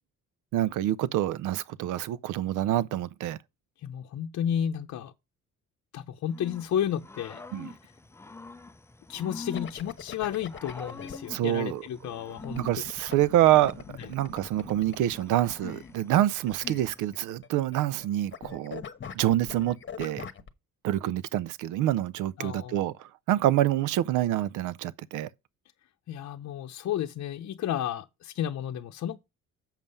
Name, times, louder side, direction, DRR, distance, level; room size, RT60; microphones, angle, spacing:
voice 1, 0.5-3.4 7.5-7.7 11.3-11.8 12.5-18.8 19.2-20.3 20.8-25.3, right 13 dB, 85° right, 0.5 m, -26 dB
voice 2, 3.8-5.1 5.9-7.4 7.8-7.9 9.1-12.6 14.0-14.1 22.4-22.9 26.1-29.2, left 10 dB, 65° left, 0.7 m, -32 dB
Growling / Cricket, 6.3-17.2, left 3 dB, 10° left, 0.4 m, -46 dB
sound 1, 9.5-11.2 12.4-17.5 17.7-18.1 18.3-20.5, left 7 dB, 40° left, 1.1 m, -42 dB
7.4 x 5.4 x 5.4 m
cardioid pair, 90°, 30 cm